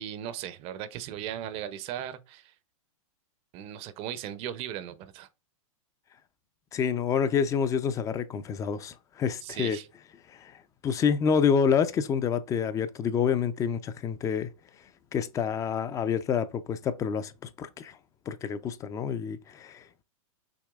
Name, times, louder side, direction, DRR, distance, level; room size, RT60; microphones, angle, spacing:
voice 1, 0.0-2.5 3.5-5.3 9.4-9.9, right 10 dB, 35° right, 0.5 m, -37 dB
voice 2, 6.7-9.8 10.3-14.5 15.1-18.0 18.3-20.0, left 7 dB, 20° left, 0.4 m, -28 dB
6.1 x 3.2 x 2.3 m
hypercardioid pair, 125°, 18 cm